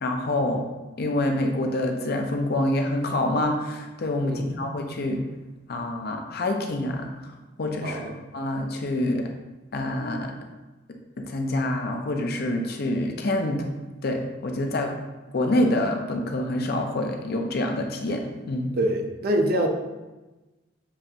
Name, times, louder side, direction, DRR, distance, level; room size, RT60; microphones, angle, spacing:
voice 1, 0.0-0.7 1.0-5.2 5.7-7.3 7.6-8.0 8.3-9.2 9.7-10.3 11.2-13.7 14.0-15.0 15.3-18.2 18.5-18.7, left 1 dB, 55° left, 3 dB, 0.5 m, -26 dB
voice 2, 7.8-8.2 18.8-19.7, right 1 dB, 50° right, 3 dB, 0.6 m, -25 dB
7.1 x 2.5 x 2.8 m, 1.1 s
head